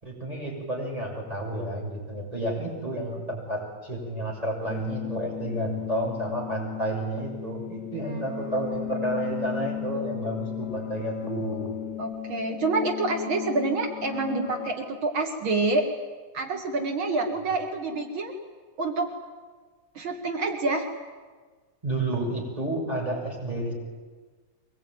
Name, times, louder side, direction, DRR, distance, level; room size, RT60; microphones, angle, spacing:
voice 1, 0.0-11.7 21.8-23.7, right 1 dB, 15° right, -2 dB, 7.2 m, -31 dB
sound 1, 4.7-14.7, left 11 dB, 65° left, 3.0 m, -35 dB
voice 2, 8.1-8.4 12.0-15.8 16.3-18.3 18.8-19.1 20.0-20.9, right 3 dB, 80° right, 3 dB, 2.9 m, -27 dB
23.5 x 21.5 x 9.3 m, 1.4 s
omnidirectional pair, 2.2 m